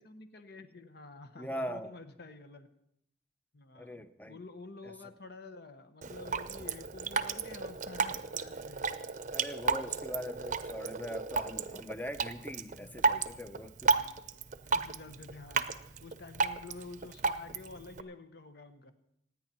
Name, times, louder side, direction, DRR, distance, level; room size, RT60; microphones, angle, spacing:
voice 1, 0.0-2.7 3.5-8.8 13.8-14.2 14.6-18.9, left 3 dB, 60° left, 9 dB, 1.2 m, -49 dB
voice 2, 1.4-1.9 3.8-4.4 4.8-4.9 9.3-14.0, equal, 10° left, 10 dB, 0.6 m, -41 dB
Drip, 6.0-18.0, right 4 dB, 45° right, 0.7 m, -34 dB
26.5 x 9.7 x 4.3 m, 0.77 s
head